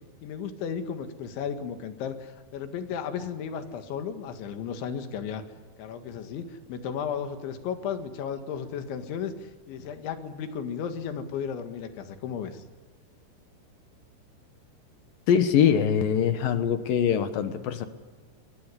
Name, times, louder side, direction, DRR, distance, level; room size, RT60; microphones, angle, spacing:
voice 1, 0.2-5.4 5.8-12.6, left 7 dB, 80° left, 8 dB, 4.2 m, -34 dB
voice 2, 15.3-17.9, left 8 dB, 65° left, 10 dB, 2.5 m, -23 dB
23.5 x 21.5 x 9.8 m, 1.4 s
omnidirectional pair, 5.3 m